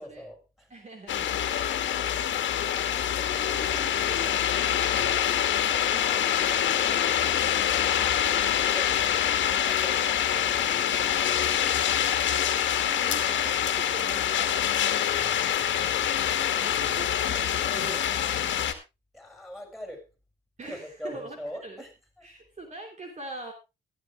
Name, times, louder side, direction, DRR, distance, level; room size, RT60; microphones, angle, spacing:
voice 1, 0.0-0.7 4.9-5.3 15.1-15.5 19.1-20.1 20.6-21.9 22.2-22.3, equal, ahead, 6.3 m, -43 dB
voice 2, 0.7-1.4 3.1-4.5 5.9-7.6 12.8-14.7 16.6-18.2 20.6-21.8 22.2-23.5, right 2 dB, 35° right, 3.2 m, -43 dB
sound 1, 1.1-18.7, left 10 dB, 70° left, 2.0 m, -25 dB
15.0 x 12.0 x 3.4 m
cardioid pair, 90°, 20 cm